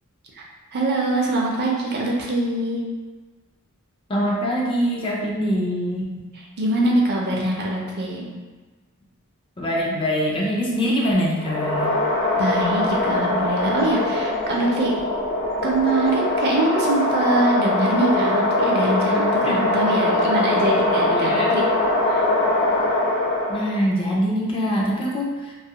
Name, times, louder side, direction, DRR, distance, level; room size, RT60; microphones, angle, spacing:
voice 1, 0.3-2.8 6.6-8.3 12.3-15.0 15.6-21.7 22.1-22.2, right 2 dB, 50° right, -2 dB, 0.5 m, -23 dB
voice 2, 4.1-6.3 9.6-11.9 19.5-19.7 21.1-21.6 23.5-25.5, equal, 25° left, -3 dB, 0.4 m, -24 dB
sound 1, 11.4-23.8, left 2 dB, 55° left, 0.7 m, -22 dB
2.7 x 2.3 x 2.8 m, 1.3 s
head